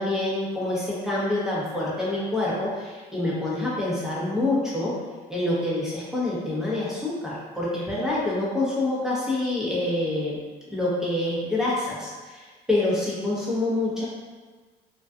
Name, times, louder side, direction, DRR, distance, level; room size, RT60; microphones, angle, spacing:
voice 1, 0.0-4.9 5.3-10.4 10.7-14.1, left 2 dB, 5° right, -7 dB, 0.8 m, -26 dB
2.4 x 2.3 x 2.3 m, 1.4 s
cardioid pair, 95°, 18 cm